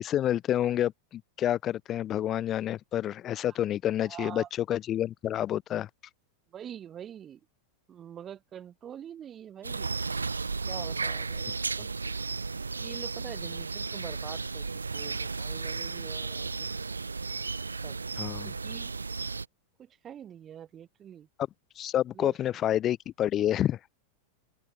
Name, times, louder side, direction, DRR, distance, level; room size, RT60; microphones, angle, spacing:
voice 1, 0.0-5.9 18.2-18.5 21.8-23.8, left 11 dB, 30° left, 2.3 m, -29 dB
voice 2, 4.0-4.5 6.5-7.4 7.9-9.9 10.7-11.5 11.8-11.9 12.7-14.7 14.9-16.7 17.8-18.0 18.5-18.9 19.8-21.3 22.1-22.7, right 9 dB, 25° right, 7.7 m, -45 dB
sound 1, 9.6-19.5, right 4 dB, 80° right, 0.4 m, -34 dB
open air
figure-of-eight pair, 90°, 0 cm